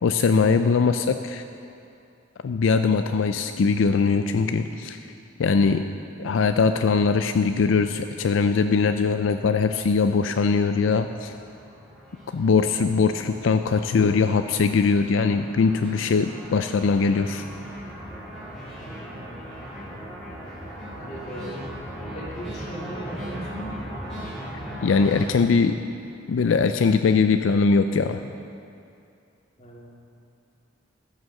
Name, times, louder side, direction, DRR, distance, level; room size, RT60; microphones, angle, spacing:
voice 1, 0.0-1.4 2.4-5.0 5.4-5.9 6.2-11.3 12.3-17.4 24.8-25.7 26.3-28.3, left 5 dB, 85° left, 8 dB, 0.4 m, -21 dB
voice 2, 4.6-5.0 18.8-19.4 20.9-21.6 22.0-23.7 29.6-29.9, right 1 dB, 35° left, -4 dB, 2.1 m, -39 dB
sound 1, 9.0-25.3, equal, 5° left, 3.1 m, -39 dB
14.0 x 6.5 x 6.5 m, 2.5 s
head